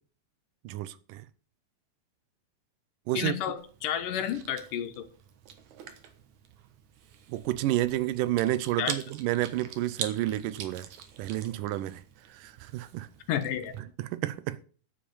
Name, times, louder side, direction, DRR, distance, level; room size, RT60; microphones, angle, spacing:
voice 1, 0.6-1.2 3.1-3.3 7.3-10.9 11.2-12.0 12.3-13.1 14.0-14.6, right 15 dB, 85° right, 2.3 m, -30 dB
voice 2, 3.1-5.1 8.8-9.0 13.3-13.7, left 10 dB, 80° left, 2.7 m, -31 dB
Chewing mastication, 3.6-13.8, right 8 dB, 70° right, 2.5 m, -44 dB
10.0 x 7.7 x 7.0 m
omnidirectional pair, 3.7 m